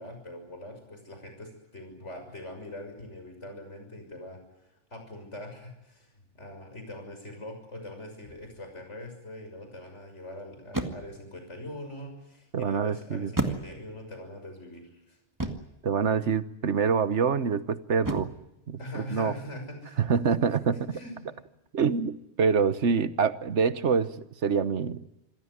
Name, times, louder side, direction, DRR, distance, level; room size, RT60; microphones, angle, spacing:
voice 1, 0.0-4.4 4.9-15.2 18.8-20.0 20.9-21.3, left 1 dB, 90° left, 5 dB, 6.7 m, -42 dB
sound 1, 8.3-8.6 10.7-11.3 13.4-14.1 15.4-15.8 18.0-18.5, right 2 dB, 15° right, 1.9 m, -32 dB
voice 2, 12.5-13.3 15.8-18.3 18.7-19.3 20.0-21.0 21.7-24.1 24.4-25.0, right 6 dB, 85° right, 14 dB, 1.4 m, -26 dB
27.0 x 16.5 x 9.8 m, 0.90 s
omnidirectional pair, 1.2 m